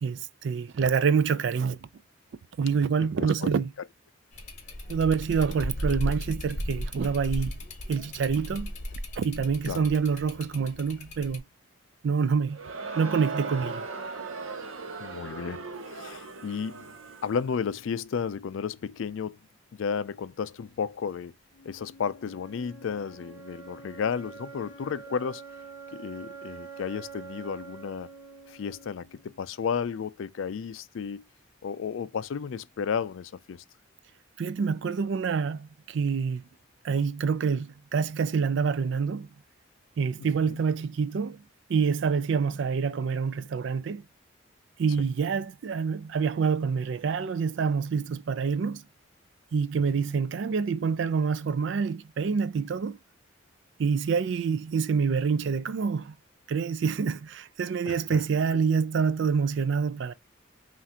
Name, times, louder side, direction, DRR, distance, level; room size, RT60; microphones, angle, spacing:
voice 1, 0.0-1.8 2.6-3.7 4.9-7.6 7.9-8.7 9.2-11.4 12.0-12.6 12.9-13.8 34.4-36.4 36.8-39.3 40.0-41.4 41.7-44.0 44.8-48.8 49.5-53.0 53.8-56.1 56.5-60.1, right 5 dB, 60° right, 0.3 m, -27 dB
voice 2, 3.0-3.5 9.7-9.9 15.0-16.9 17.2-19.4 19.7-21.3 21.7-25.4 25.9-28.1 28.5-31.2 31.6-33.6 40.4-40.6 49.8-49.9 57.8-58.2, left 6 dB, 70° left, 0.4 m, -33 dB
sound 1, 4.3-11.4, equal, 35° left, 0.8 m, -36 dB
Crowd, 12.5-17.5, right 3 dB, 80° right, 0.8 m, -38 dB
sound 2, 21.5-29.5, right 5 dB, 10° right, 1.8 m, -46 dB
5.6 x 2.5 x 2.8 m
head